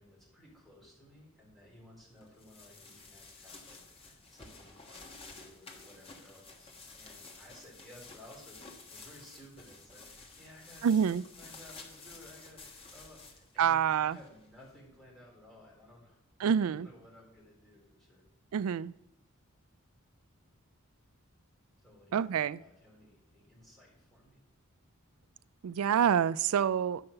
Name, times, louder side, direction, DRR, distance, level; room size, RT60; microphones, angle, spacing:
voice 1, 0.0-18.2 21.8-24.4, left 1 dB, ahead, -5 dB, 3.8 m, -57 dB
sound 1, 2.2-14.7, left 3 dB, 25° left, 1.3 m, -52 dB
voice 2, 10.8-11.2 13.6-14.2 16.4-16.9 18.5-18.9 22.1-22.6 25.6-27.0, right 8 dB, 75° right, 19 dB, 0.3 m, -27 dB
11.0 x 5.7 x 6.6 m, 0.83 s
head